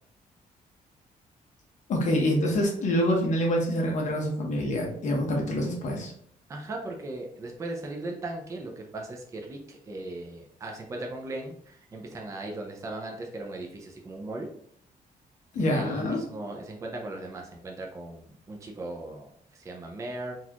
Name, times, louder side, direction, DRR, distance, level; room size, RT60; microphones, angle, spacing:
voice 1, 1.9-6.1 15.5-16.2, equal, 55° left, 0 dB, 0.9 m, -26 dB
voice 2, 6.5-14.5 15.5-20.3, right 2 dB, 20° right, 1 dB, 0.4 m, -38 dB
4.0 x 2.4 x 2.8 m, 0.66 s
wide cardioid pair, 175°, 15 cm